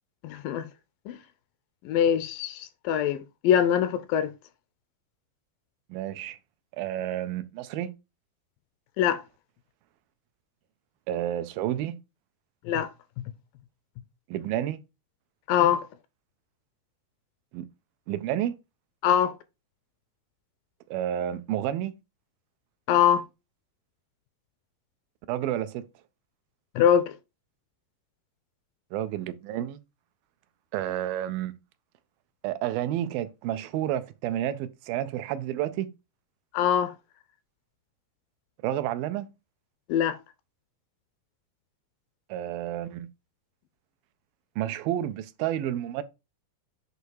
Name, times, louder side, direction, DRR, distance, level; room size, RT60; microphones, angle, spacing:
voice 1, 0.2-0.7 1.1-1.2 1.9-4.3 9.0-9.2 12.7-12.9 15.5-15.9 19.0-19.4 22.9-23.2 26.8-27.1 36.5-36.9 39.9-40.2, left 9 dB, 80° left, 2.1 m, -23 dB
voice 2, 5.9-6.4 6.8-7.9 11.1-12.0 14.3-14.8 17.5-17.6 18.1-18.5 20.9-21.9 25.3-25.8 28.9-29.8 30.7-31.5 32.4-35.9 38.6-39.3 42.3-43.1 44.6-46.0, right 12 dB, 85° right, 2.3 m, -30 dB
8.1 x 2.7 x 4.5 m
omnidirectional pair, 4.2 m